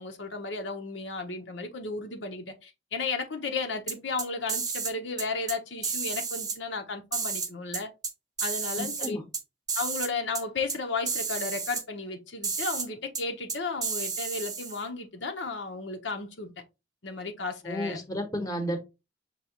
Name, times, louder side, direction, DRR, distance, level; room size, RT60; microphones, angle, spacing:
voice 1, 0.0-7.9 8.4-9.2 9.7-16.5 17.0-18.0, left 4 dB, 75° left, 0.9 m, -34 dB
sound 1, 3.9-4.9 5.2-5.6 5.8-6.6 7.1-8.1 8.4-9.4 9.7-10.1 10.3-10.4 10.7-10.8 11.1-11.8 12.4-12.9 13.1-13.2 13.5-14.8, right 5 dB, 20° right, 0.7 m, -31 dB
voice 2, 8.8-9.2 17.6-18.8, equal, 20° left, 1.1 m, -32 dB
5.6 x 3.0 x 3.0 m
head